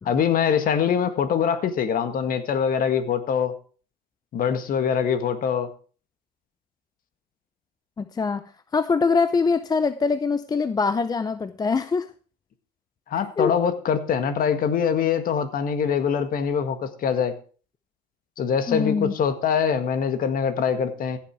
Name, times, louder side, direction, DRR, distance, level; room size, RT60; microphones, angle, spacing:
voice 1, 0.0-3.5 4.3-5.7 13.1-17.3 18.4-21.2, left 7 dB, 40° left, 10 dB, 1.8 m, -23 dB
voice 2, 8.0-8.4 8.7-12.1 13.4-13.5 18.7-19.1, left 4 dB, 20° left, 12 dB, 0.6 m, -23 dB
15.5 x 7.2 x 4.7 m, 0.39 s
hypercardioid pair, 90°, 21 cm